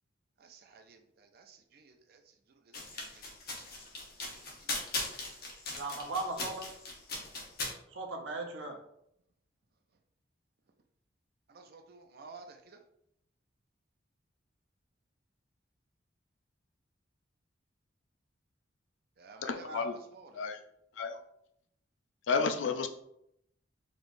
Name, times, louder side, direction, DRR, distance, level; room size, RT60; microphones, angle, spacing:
voice 1, 0.4-2.3 2.6-3.7 3.9-4.9 5.7-6.1 11.5-12.8 19.2-20.4, right 4 dB, 50° right, 0.5 m, -55 dB
sound 1, 2.7-7.7, left 2 dB, 50° left, 1.1 m, -39 dB
voice 2, 5.7-6.7 7.9-8.8 19.3-19.8, right 2 dB, 85° right, 0.8 m, -38 dB
voice 3, 19.4-20.0 20.3-20.6 21.0-21.2 22.3-22.9, left 5 dB, 80° left, 0.5 m, -31 dB
4.6 x 3.1 x 2.6 m
head